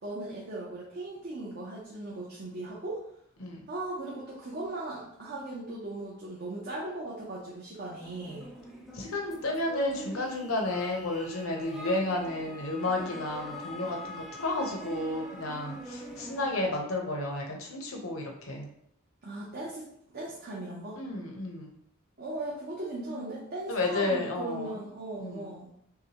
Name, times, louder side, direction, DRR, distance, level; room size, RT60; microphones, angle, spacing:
voice 1, 0.0-3.0 3.7-8.5 19.2-19.8 20.1-21.0 22.2-25.7, right 2 dB, 50° right, -5 dB, 0.8 m, -38 dB
sound 1, 8.0-16.7, left 1 dB, ahead, 0.4 m, -44 dB
voice 2, 8.9-18.7 21.0-21.7 23.7-24.8 25.2-25.6, left 2 dB, 65° left, 1 dB, 0.8 m, -32 dB
5.7 x 2.2 x 3.0 m, 0.72 s
head